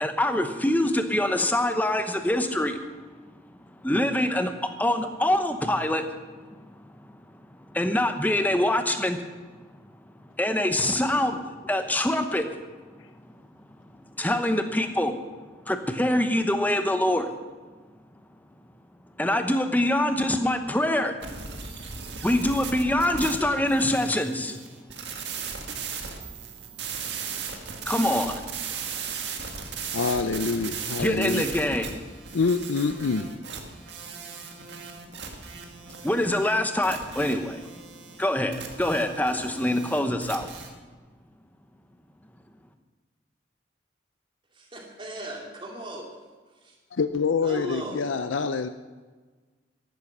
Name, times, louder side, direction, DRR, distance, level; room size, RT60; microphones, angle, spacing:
voice 1, 0.0-2.7 3.8-4.5 4.8-6.0 7.7-9.2 10.4-11.4 11.7-12.4 14.2-15.1 15.7-17.3 19.2-21.1 22.2-24.5 27.9-28.3 31.0-31.9 36.0-37.6 38.2-40.5, left 1 dB, 10° left, 7 dB, 0.9 m, -24 dB
sound 1, 21.2-40.7, right 6 dB, 65° right, 1.9 m, -37 dB
voice 2, 29.9-31.5 32.3-33.3 47.0-48.7, left 4 dB, 85° left, 10 dB, 0.5 m, -26 dB
voice 3, 44.5-46.0 47.4-48.1, equal, 25° right, 0 dB, 2.6 m, -37 dB
14.0 x 11.5 x 6.0 m, 1.4 s
head